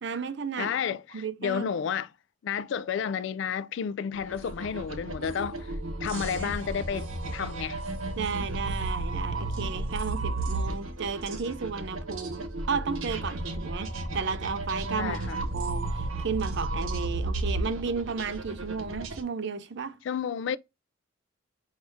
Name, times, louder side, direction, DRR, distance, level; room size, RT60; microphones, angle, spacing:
voice 1, 0.0-0.8 1.1-1.7 6.4-6.6 8.2-15.2 15.5-20.0, right 5 dB, 60° right, 0.5 m, -33 dB
voice 2, 0.6-2.1 2.4-5.7 6.0-7.8 15.0-15.4 20.0-20.6, left 7 dB, 60° left, 0.3 m, -31 dB
sound 1, 4.1-19.2, right 2 dB, 80° right, 1.0 m, -33 dB
4.8 x 2.7 x 3.4 m
head